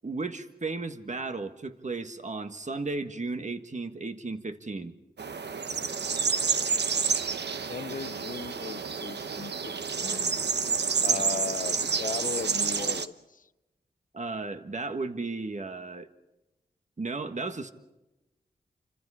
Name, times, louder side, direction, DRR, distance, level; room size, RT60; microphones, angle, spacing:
voice 1, 0.0-4.9 11.1-11.2 14.1-16.1 17.0-17.7, right 3 dB, 45° right, 1.6 m, -34 dB
sound 1, 5.2-13.1, right 5 dB, 85° right, 1.0 m, -29 dB
voice 2, 7.7-9.7 10.0-10.4 11.0-13.5, left 5 dB, 50° left, 0.7 m, -37 dB
29.5 x 25.5 x 5.0 m
wide cardioid pair, 80°, 17 cm